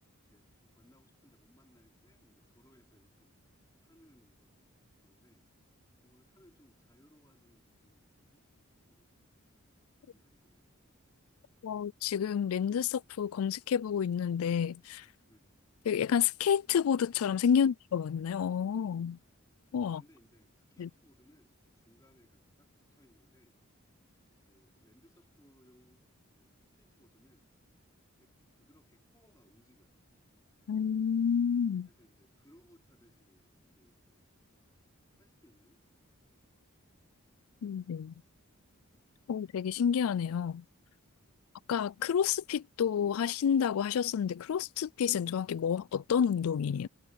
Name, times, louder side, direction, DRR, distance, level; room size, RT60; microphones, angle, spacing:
voice 1, 0.3-3.4 3.8-4.7 5.0-5.5 6.0-8.5 8.8-9.1 10.0-10.6 15.3-15.5 17.5-17.8 19.9-23.6 24.5-26.1 26.3-27.5 28.2-30.0 31.9-34.0 35.1-35.8 41.2-41.5, equal, 15° left, 5.0 m, -66 dB
voice 2, 11.6-15.1 15.9-19.2 19.7-20.0 20.8-20.9 30.7-31.9 37.6-38.1 39.3-40.6 41.7-46.9, left 7 dB, 75° left, 0.3 m, -29 dB
head